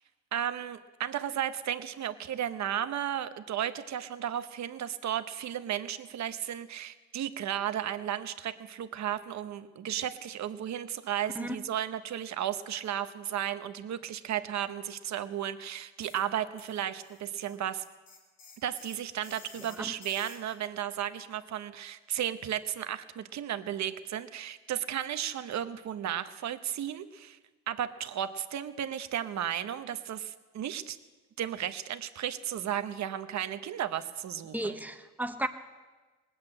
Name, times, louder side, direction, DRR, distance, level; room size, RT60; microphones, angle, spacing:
voice 1, 0.3-17.8 18.6-27.4 27.7-31.0 31.4-34.8, right 10 dB, 65° right, 11 dB, 1.0 m, -34 dB
sound 1, 16.0-16.3 16.6-20.6, left 4 dB, 90° left, 4.3 m, -52 dB
voice 2, 34.5-35.5, right 1 dB, 5° right, 7 dB, 1.1 m, -34 dB
19.5 x 8.1 x 8.8 m, 1.3 s
cardioid pair, 90°, 30 cm